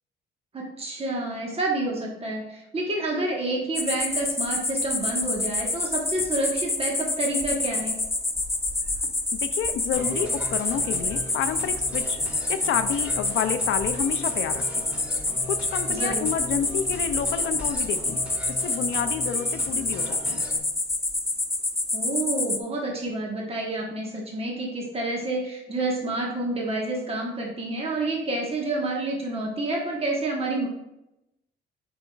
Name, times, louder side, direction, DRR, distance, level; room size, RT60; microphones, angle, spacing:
voice 1, 0.5-8.0 15.9-16.3 21.9-30.7, right 2 dB, 30° right, -1 dB, 1.4 m, -29 dB
sound 1, 3.7-22.6, left 2 dB, 15° left, 0.7 m, -27 dB
voice 2, 9.0-12.2 12.5-14.8 15.5-20.4, left 8 dB, 75° left, 9 dB, 0.5 m, -30 dB
sound 2, 9.9-20.6, left 1 dB, 5° right, 1.5 m, -40 dB
7.6 x 5.6 x 2.4 m, 0.89 s
cardioid pair, 90°, 20 cm